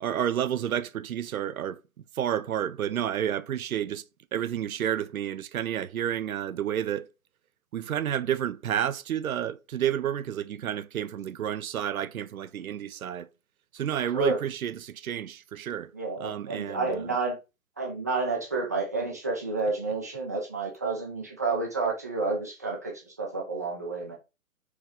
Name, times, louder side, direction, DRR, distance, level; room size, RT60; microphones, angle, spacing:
voice 1, 0.0-1.8 2.1-4.0 4.3-7.1 7.7-13.3 13.7-15.9 16.2-17.2, right 10 dB, 80° right, 0.6 m, -30 dB
voice 2, 15.9-17.4 17.8-24.1, right 3 dB, 15° right, 0.4 m, -30 dB
4.7 x 3.3 x 3.4 m
hypercardioid pair, 135°, 42 cm